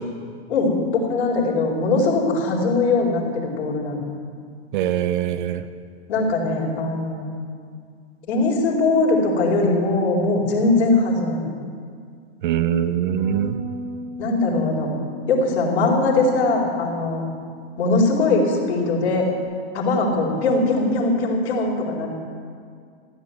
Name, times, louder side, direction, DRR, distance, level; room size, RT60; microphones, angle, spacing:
voice 1, 1.0-4.0 6.1-7.3 8.3-11.5 14.2-14.9 15.3-17.2 17.8-19.3 19.7-22.1, left 3 dB, 75° left, -2 dB, 4.6 m, -21 dB
voice 2, 4.7-5.6 12.4-13.6, right 10 dB, 50° right, 11 dB, 0.9 m, -22 dB
Bass guitar, 13.2-19.4, left 1 dB, 70° right, 3.4 m, -39 dB
15.5 x 8.4 x 9.5 m, 2.1 s
supercardioid pair, 170°, 33 cm